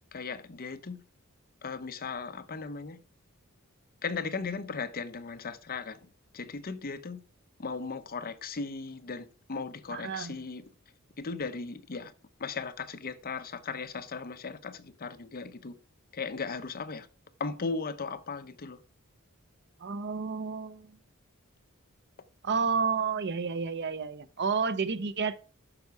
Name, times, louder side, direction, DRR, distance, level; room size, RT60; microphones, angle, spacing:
voice 1, 0.1-1.0 1.6-3.0 4.0-6.1 6.3-7.2 7.6-10.6 11.2-12.1 12.4-15.8 16.1-17.1 17.4-18.8, left 4 dB, 45° left, 0.7 m, -37 dB
voice 2, 9.9-10.4 19.8-21.0 22.4-25.4, right 5 dB, 55° right, 0.7 m, -30 dB
9.8 x 6.7 x 4.7 m
head